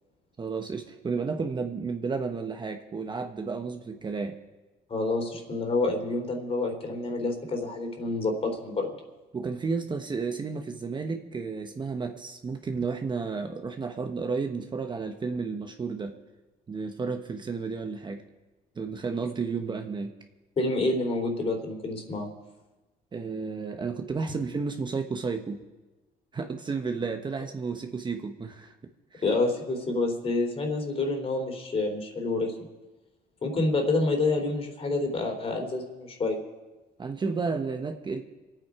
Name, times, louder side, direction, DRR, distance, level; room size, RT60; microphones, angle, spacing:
voice 1, 0.4-4.4 9.3-16.1 16.7-18.2 18.8-20.1 23.1-25.6 26.3-28.7 29.1-29.2 33.5-33.6 37.0-38.2, right 4 dB, 25° right, 5 dB, 1.0 m, -32 dB
voice 2, 4.9-8.9 20.6-22.3 29.2-32.5 33.4-36.4, left 2 dB, 35° left, 3 dB, 3.1 m, -28 dB
26.0 x 8.8 x 4.8 m, 1.2 s
cardioid pair, 110°, 17 cm